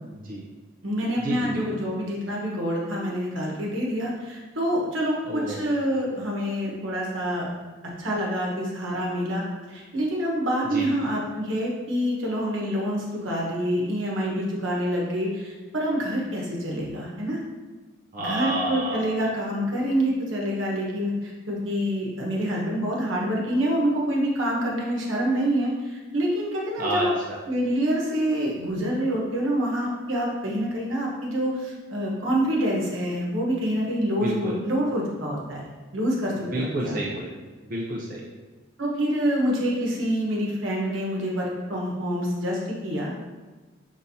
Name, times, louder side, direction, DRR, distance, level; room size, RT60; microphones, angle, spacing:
voice 1, 0.1-0.4 1.2-1.6 5.3-5.6 10.7-10.9 18.1-19.0 26.8-27.1 34.2-34.5 36.5-37.3 37.7-38.2, right 1 dB, 45° right, -4 dB, 0.6 m, -29 dB
voice 2, 0.8-7.5 8.0-17.4 18.2-27.1 27.5-37.0 38.8-43.1, equal, 85° right, -3 dB, 1.2 m, -26 dB
5.4 x 3.6 x 2.7 m, 1.3 s
head